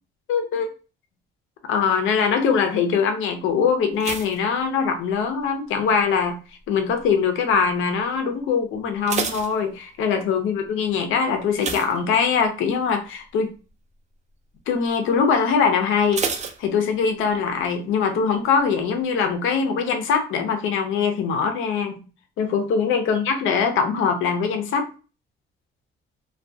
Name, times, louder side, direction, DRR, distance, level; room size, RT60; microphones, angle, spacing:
voice 1, 0.3-0.7 1.6-6.4 6.7-13.5 14.7-16.2 16.6-22.1 22.4-24.9, left 6 dB, 85° left, 6 dB, 0.6 m, -22 dB
sound 1, 4.0-5.5 5.7-6.2 6.8-7.2 7.5-7.6 8.0-8.1 8.7-10.3 11.5-12.7 13.1-13.3 13.7-13.8 16.1-17.3 17.6-17.7, right 5 dB, 35° right, 0.4 m, -31 dB
2.3 x 2.2 x 2.6 m, 0.34 s
cardioid pair, 90°, 20 cm